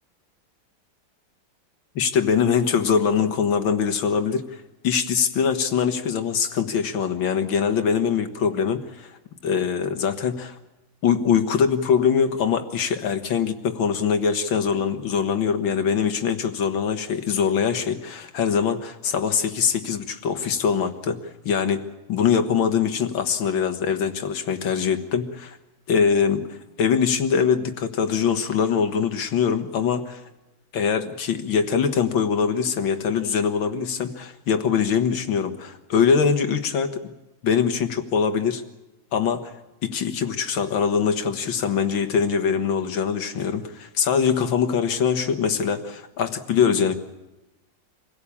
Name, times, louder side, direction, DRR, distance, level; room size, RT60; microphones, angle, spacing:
voice 1, 2.0-9.2 9.4-10.6 11.0-21.2 21.4-25.6 25.9-30.2 30.7-37.1 37.4-38.6 39.1-39.5 39.8-46.9, left 6 dB, 85° left, 8 dB, 2.2 m, -23 dB
26.5 x 17.0 x 8.6 m, 1.0 s
omnidirectional pair, 2.1 m